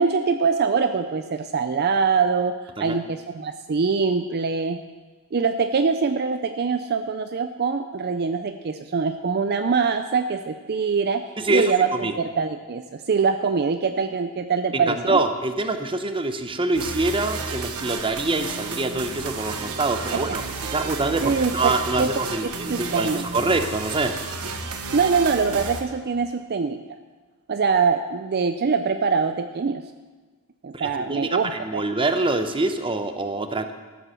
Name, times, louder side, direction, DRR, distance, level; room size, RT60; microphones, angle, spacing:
voice 1, 0.0-4.8 5.3-11.2 11.5-15.2 21.2-21.7 22.0-22.1 22.7-23.3 24.9-26.8 27.5-29.8 30.6-31.8, right 5 dB, 45° right, 8 dB, 0.5 m, -23 dB
voice 2, 11.4-12.1 14.7-20.4 20.7-24.1 30.7-33.7, right 2 dB, 25° right, 8 dB, 0.8 m, -25 dB
sound 1, 16.7-25.8, right 4 dB, 75° right, 1.3 m, -32 dB
14.5 x 7.9 x 6.3 m, 1.3 s
head